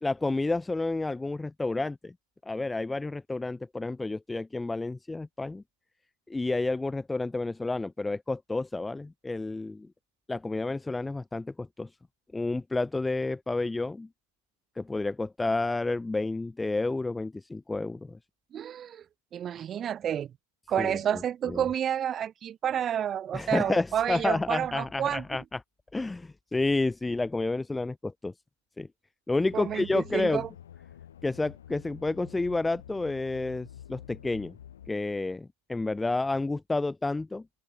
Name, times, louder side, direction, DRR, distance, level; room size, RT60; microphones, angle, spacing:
voice 1, 0.0-2.1 2.4-5.6 6.3-9.9 10.3-11.9 12.3-14.1 14.8-18.2 20.8-21.2 21.5-21.6 23.3-25.6 25.9-28.3 28.8-28.9 29.3-30.5 31.2-34.6 34.9-37.4, left 2 dB, 10° left, 0.4 m, -30 dB
voice 2, 18.5-19.0 19.3-20.3 20.7-25.4 29.5-30.5, right 9 dB, 25° right, 1.4 m, -30 dB
sound 1, 29.4-34.9, left 10 dB, 65° left, 2.3 m, -49 dB
open air
figure-of-eight pair, 90°, 0 cm